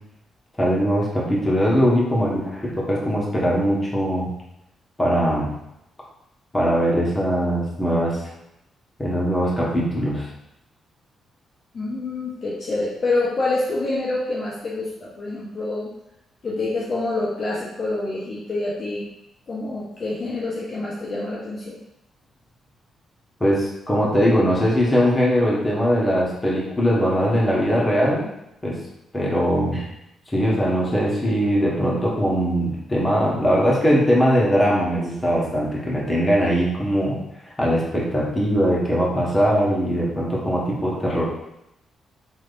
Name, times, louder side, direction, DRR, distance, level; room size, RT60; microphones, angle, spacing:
voice 1, 0.6-4.3 5.0-5.5 6.5-8.2 9.0-10.3 23.4-28.2 28.6-28.8 29.1-29.9 30.3-37.2 37.6-41.2, equal, 20° left, -5 dB, 1.2 m, -21 dB
voice 2, 11.7-15.9 16.4-19.0 19.5-21.8, left 2 dB, 50° left, -5 dB, 0.6 m, -26 dB
3.2 x 2.7 x 2.5 m, 0.84 s
hypercardioid pair, 40°, 0 cm